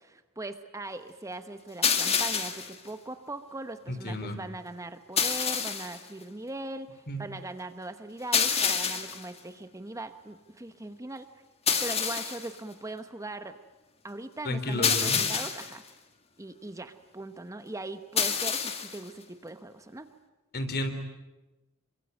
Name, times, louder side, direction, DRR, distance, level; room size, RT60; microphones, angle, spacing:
voice 1, 0.0-11.3 11.8-13.6 14.0-15.8 16.4-20.1, right 2 dB, 15° right, 9 dB, 1.0 m, -40 dB
sound 1, 1.8-2.8 5.2-6.0 8.3-9.3 11.7-12.5 14.8-15.8 18.2-19.0, left 6 dB, 30° left, 2.1 m, -27 dB
voice 2, 3.9-4.4 7.1-7.2 14.5-15.2 20.5-20.9, left 1 dB, 50° left, 8 dB, 3.5 m, -31 dB
27.5 x 23.5 x 9.1 m, 1.1 s
head